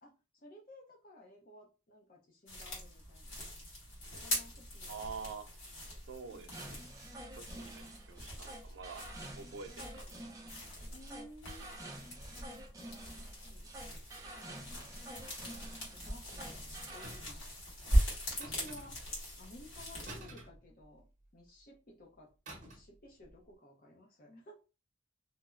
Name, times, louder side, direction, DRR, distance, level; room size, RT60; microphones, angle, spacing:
voice 1, 0.0-3.4 4.1-5.0 5.7-6.0 6.3-6.5 10.9-11.8 12.8-13.7 14.4-15.2 15.7-17.5 18.3-19.0 19.4-21.1 21.3-22.3 22.6-24.5, left 1 dB, 45° left, 0.6 m, -56 dB
sound 1, 2.5-20.2, equal, 90° left, 1.3 m, -40 dB
voice 2, 4.9-5.5 6.1-6.9 7.4-9.0 9.3-10.3, right 5 dB, 70° right, 0.4 m, -47 dB
sound 2, 6.5-17.3, right 1 dB, 15° right, 0.5 m, -49 dB
sound 3, 17.0-17.5 18.4-19.2 20.1-21.2 22.5-23.0 23.2-23.5, right 1 dB, 40° right, 0.8 m, -50 dB
3.0 x 2.0 x 2.3 m
head